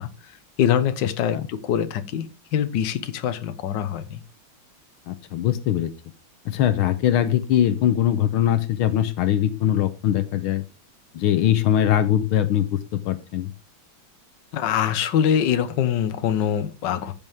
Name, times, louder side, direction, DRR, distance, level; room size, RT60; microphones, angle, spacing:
voice 1, 0.0-4.2 14.5-17.1, left 9 dB, 60° left, 1.5 m, -24 dB
voice 2, 5.1-5.9 6.4-10.6 11.1-13.5, left 11 dB, 80° left, 1.6 m, -21 dB
14.0 x 7.1 x 3.5 m
omnidirectional pair, 2.3 m